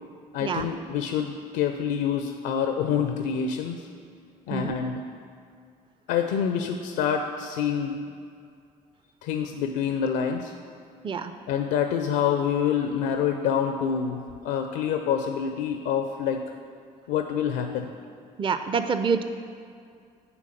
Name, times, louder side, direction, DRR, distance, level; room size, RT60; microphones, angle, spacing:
voice 1, 0.3-3.8 4.5-5.0 6.1-8.0 9.2-10.5 11.5-16.4 17.1-17.9, left 7 dB, 70° left, 5 dB, 0.5 m, -27 dB
voice 2, 18.4-19.2, right 5 dB, 25° right, 9 dB, 0.4 m, -26 dB
9.0 x 3.6 x 6.5 m, 2.4 s
hypercardioid pair, 50°, 20 cm